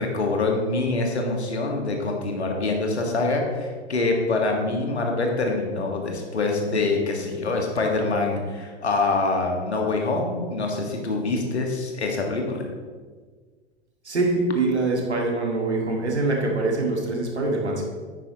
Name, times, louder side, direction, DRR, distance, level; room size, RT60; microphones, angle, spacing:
voice 1, 0.0-12.7, left 3 dB, 75° left, 1 dB, 1.8 m, -25 dB
voice 2, 14.0-17.8, right 2 dB, 80° right, 0 dB, 2.0 m, -24 dB
9.9 x 9.1 x 3.0 m, 1.5 s
figure-of-eight pair, 100°, 33 cm